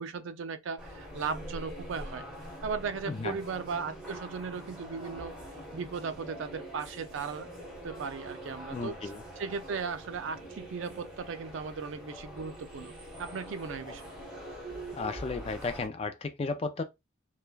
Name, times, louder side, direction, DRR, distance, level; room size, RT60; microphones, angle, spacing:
voice 1, 0.0-2.2 2.6-5.4 5.7-7.5 7.8-8.9 9.4-12.9 13.2-14.0, right 5 dB, 75° right, 0.4 m, -37 dB
sound 1, 0.8-15.9, right 1 dB, 5° right, 1.1 m, -44 dB
voice 2, 8.7-9.2 13.9-14.0 14.9-16.8, left 3 dB, 30° left, 0.3 m, -34 dB
3.1 x 2.2 x 2.2 m
head